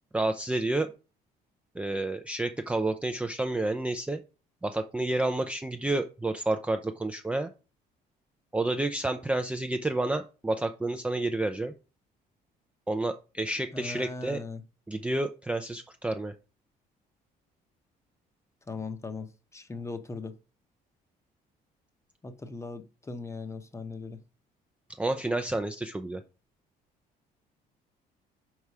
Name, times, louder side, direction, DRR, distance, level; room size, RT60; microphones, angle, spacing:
voice 1, 0.1-0.9 1.7-4.2 4.6-7.5 8.5-11.7 12.9-14.4 14.9-16.3 25.0-26.2, right 2 dB, 5° right, 7 dB, 0.4 m, -30 dB
voice 2, 13.7-14.6 18.7-20.3 22.2-24.2, left 3 dB, 15° left, 10 dB, 0.8 m, -39 dB
4.8 x 4.6 x 5.5 m, 0.33 s
cardioid pair, 110°, 17 cm